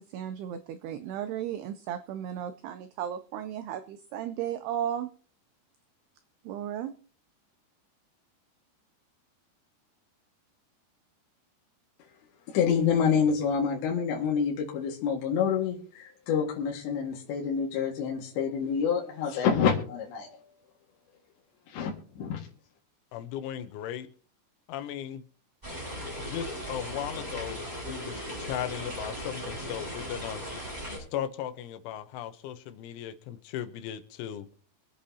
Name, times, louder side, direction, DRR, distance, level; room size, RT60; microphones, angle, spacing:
voice 1, 0.1-5.1 6.5-6.9, right 10 dB, 85° right, 9 dB, 2.3 m, -35 dB
voice 2, 12.5-20.4 21.7-22.4, left 7 dB, 70° left, -2 dB, 3.9 m, -27 dB
voice 3, 23.1-24.1 24.7-25.2 26.3-30.5 31.1-34.5, left 10 dB, 85° left, 11 dB, 3.4 m, -37 dB
sound 1, 25.6-31.0, equal, 10° right, 7.3 m, -37 dB
25.5 x 8.5 x 2.8 m, 0.43 s
omnidirectional pair, 5.3 m